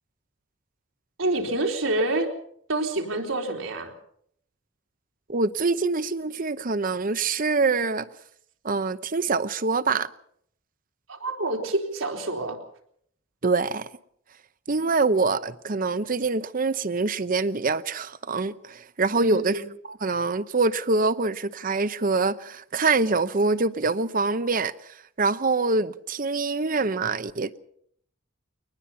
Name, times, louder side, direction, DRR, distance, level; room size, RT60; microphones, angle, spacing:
voice 1, 1.2-2.3 2.7-3.9 11.1-12.6 19.2-19.6, right 2 dB, 85° right, 3.7 m, -27 dB
voice 2, 5.3-8.1 8.6-10.1 13.4-13.9 14.7-27.6, right 3 dB, 45° right, 0.8 m, -25 dB
23.0 x 19.5 x 5.7 m
head